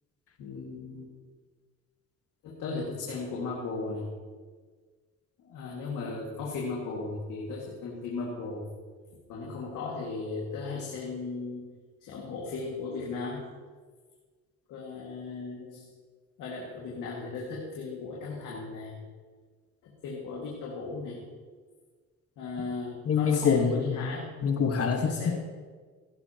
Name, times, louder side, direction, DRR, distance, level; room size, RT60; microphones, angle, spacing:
voice 1, 0.4-1.1 2.4-4.1 5.4-8.7 9.3-11.6 12.0-13.4 14.7-15.9 16.4-18.9 19.8-21.2 22.4-24.3 25.0-25.3, left 3 dB, 90° left, -4 dB, 2.1 m, -36 dB
voice 2, 23.0-24.1 24.4-25.3, left 6 dB, 50° left, 5 dB, 1.5 m, -25 dB
16.5 x 11.5 x 3.0 m, 1.5 s
cardioid pair, 90°, 30 cm